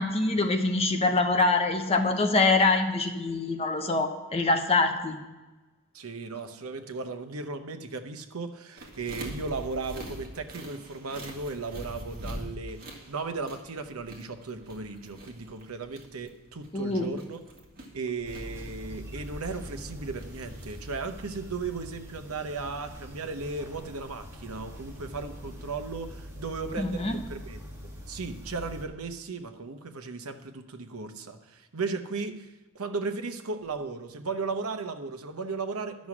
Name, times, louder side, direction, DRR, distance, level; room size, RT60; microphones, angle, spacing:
voice 1, 0.0-5.2 16.7-17.1 26.8-27.2, left 3 dB, 25° left, 4 dB, 1.0 m, -24 dB
voice 2, 5.9-17.4 17.9-27.6 28.1-32.5 32.7-36.1, right 4 dB, 80° right, 7 dB, 0.9 m, -36 dB
sound 1, 8.8-20.9, right 1 dB, 45° right, 2.1 m, -44 dB
sound 2, 18.2-28.9, equal, 15° right, 1.6 m, -43 dB
11.5 x 6.3 x 7.2 m, 1.1 s
head